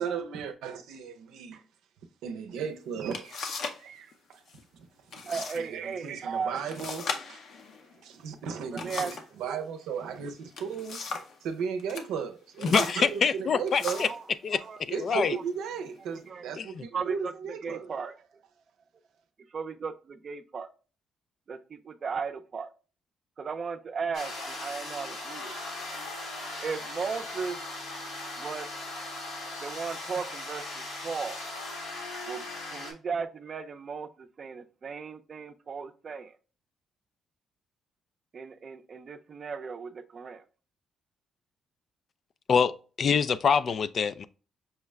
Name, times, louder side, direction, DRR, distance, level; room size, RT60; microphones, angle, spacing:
voice 1, 0.0-1.6 2.2-4.4 4.8-4.9 5.1-7.4 8.0-14.0 14.9-17.9, right 6 dB, 90° right, 0.6 m, -36 dB
sound 1, 2.6-2.7 3.1-3.9 4.1-4.6 5.1-5.6 5.9-6.0 6.7-9.3 10.3-11.4 11.8-12.1 12.6-14.2 15.0-15.2 15.7-16.2, left 4 dB, 70° left, 0.7 m, -37 dB
voice 2, 5.3-6.6 8.8-9.1 14.0-14.2 14.5-14.8 15.1-15.2 16.3-16.5 16.9-17.3 17.6-18.1 19.5-20.7 21.5-22.7 23.4-25.6 26.6-27.6 28.4-28.7 29.6-31.4 32.3-32.5 32.7-36.3 38.3-40.4, right 5 dB, 45° right, 0.5 m, -36 dB
voice 3, 12.6-14.1 14.4-14.6 15.0-15.4 16.6-16.7 42.5-42.7 43.0-44.3, left 6 dB, 50° left, 0.3 m, -25 dB
sound 2, 24.1-32.9, left 2 dB, 90° left, 1.6 m, -38 dB
5.6 x 2.1 x 3.4 m
cardioid pair, 90°, 0 cm